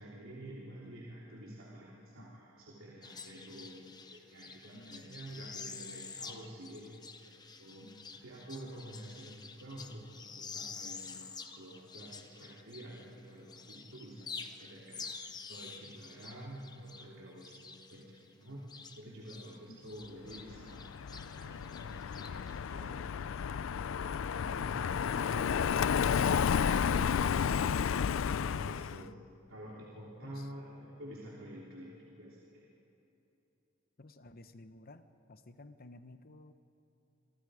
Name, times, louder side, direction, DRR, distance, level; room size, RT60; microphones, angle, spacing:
voice 1, 0.0-7.3 7.6-23.2 23.5-28.2 28.4-29.2 29.5-32.7, right 1 dB, 85° right, -6 dB, 3.2 m, -49 dB
sound 1, 3.0-13.2 13.5-19.6 19.8-22.6, left 5 dB, 20° left, 0.9 m, -48 dB
voice 2, 4.7-5.3 7.8-8.1 19.7-20.0 28.9-29.3 30.2-30.5 34.0-36.5, left 2 dB, 50° left, 10 dB, 1.0 m, -55 dB
Car passing by, 20.5-29.1, left 7 dB, 75° left, 0.4 m, -32 dB
28.5 x 23.5 x 5.0 m, 3.0 s
head